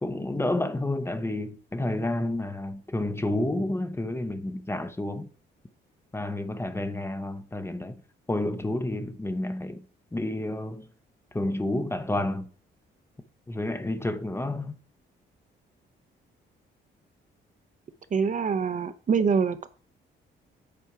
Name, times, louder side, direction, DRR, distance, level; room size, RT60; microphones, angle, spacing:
voice 1, 0.0-5.3 6.1-7.9 8.3-9.8 10.1-10.9 11.3-12.5 13.5-14.8, left 1 dB, 10° left, 0.7 m, -30 dB
voice 2, 18.1-19.7, right 6 dB, 40° right, 0.7 m, -25 dB
8.4 x 4.3 x 4.8 m
cardioid pair, 90°, 20 cm